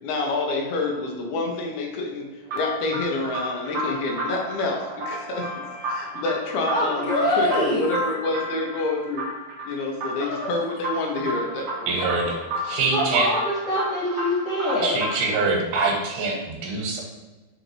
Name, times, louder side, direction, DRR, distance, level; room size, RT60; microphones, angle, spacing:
voice 1, 0.0-2.3 2.5-9.3 9.7-12.0, left 3 dB, 85° left, 1 dB, 2.6 m, -28 dB
sound 1, 2.5-15.4, right 1 dB, 70° right, 1.1 m, -32 dB
voice 2, 6.7-7.8 10.2-10.7 12.9-15.0, left 1 dB, 60° left, -7 dB, 1.5 m, -24 dB
voice 3, 11.9-13.3 14.8-17.0, right 3 dB, 85° right, 0 dB, 2.7 m, -24 dB
6.3 x 2.6 x 2.9 m, 1.2 s
omnidirectional pair, 4.3 m